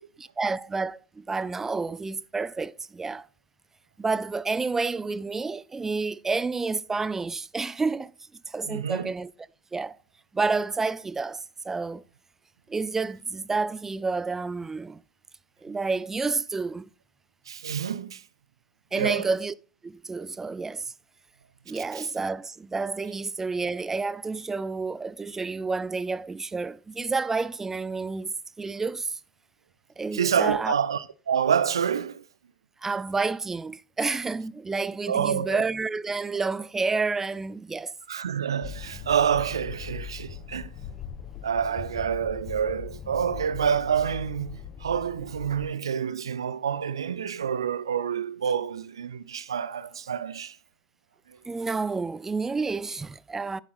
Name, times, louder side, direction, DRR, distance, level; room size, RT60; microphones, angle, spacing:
voice 1, 0.4-3.3 4.0-8.1 8.5-9.3 9.7-10.0 10.3-12.0 12.7-15.0 15.6-16.9 18.9-19.5 19.8-20.9 21.7-29.2 30.0-30.7 32.8-37.9 51.5-53.6, right 4 dB, 15° right, 0.4 m, -29 dB
voice 2, 8.7-9.1 17.5-18.2 19.0-19.3 21.9-22.1 30.1-32.2 35.1-35.6 38.1-40.7 41.4-50.6, right 8 dB, 80° right, 0.5 m, -27 dB
sound 1, 38.6-45.7, left 9 dB, 40° left, 1.5 m, -40 dB
11.5 x 9.5 x 2.5 m
figure-of-eight pair, 80°, 3 cm